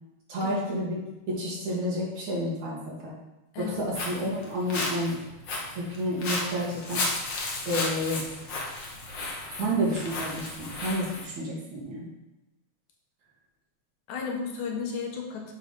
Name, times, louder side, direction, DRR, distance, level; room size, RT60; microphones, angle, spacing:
voice 1, 0.3-1.0 1.3-3.1 3.6-5.2 5.7-7.2 7.7-8.2 9.6-12.0, equal, 70° right, -6 dB, 3.3 m, -30 dB
voice 2, 3.5-3.8 14.1-15.5, left 5 dB, 75° left, 1 dB, 2.5 m, -33 dB
Walk footsteps, 3.6-11.3, left 2 dB, 50° left, 1.6 m, -34 dB
7.9 x 4.9 x 5.3 m, 1.0 s
omnidirectional pair, 3.4 m